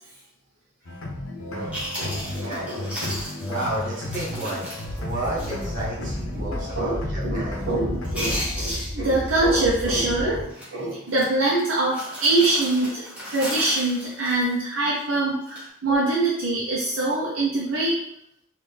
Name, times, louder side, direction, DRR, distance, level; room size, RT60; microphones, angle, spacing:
sound 1, 0.8-8.2, left 1 dB, 75° left, 0.7 m, -34 dB
Chewing mastication, 1.4-1.5 1.7-5.8 6.0-6.2 6.7-7.0 7.2-7.7 8.0-9.5 9.8-10.1 10.5-10.7 11.1-15.0 15.4-15.7, equal, 5° right, 1.1 m, -35 dB
voice 1, 1.9-3.1 6.0-6.1 6.3-6.5 6.7-13.0 13.3-18.0, right 2 dB, 60° right, -6 dB, 0.7 m, -24 dB
voice 2, 3.5-7.6 14.1-14.2, right 1 dB, 40° right, -6 dB, 1.3 m, -32 dB
sound 2, 4.8-10.4, equal, 25° left, 0.7 m, -33 dB
3.9 x 2.5 x 3.4 m, 0.73 s
head